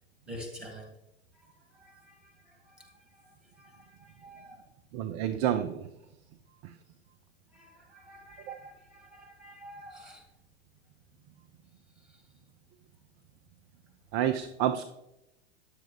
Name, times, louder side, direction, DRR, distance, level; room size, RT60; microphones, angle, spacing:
voice 1, 0.2-0.9 1.3-4.7 7.5-10.3 12.1-12.2, equal, ahead, 2.2 m, -49 dB
voice 2, 4.9-5.9 6.6-6.7 8.4-8.6 14.1-14.8, right 10 dB, 35° right, 0.5 m, -29 dB
10.0 x 7.4 x 3.4 m
figure-of-eight pair, 95°, 36 cm